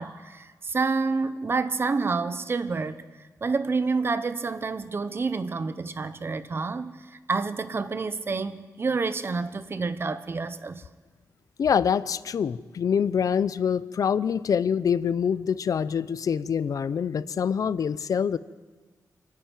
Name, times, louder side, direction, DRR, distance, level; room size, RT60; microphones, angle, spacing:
voice 1, 0.0-3.0 3.4-10.8, right 4 dB, 35° right, 12 dB, 1.0 m, -28 dB
voice 2, 11.6-18.4, left 7 dB, 65° left, 17 dB, 0.6 m, -25 dB
28.0 x 10.5 x 9.2 m, 1.4 s
wide cardioid pair, 140°, 7 cm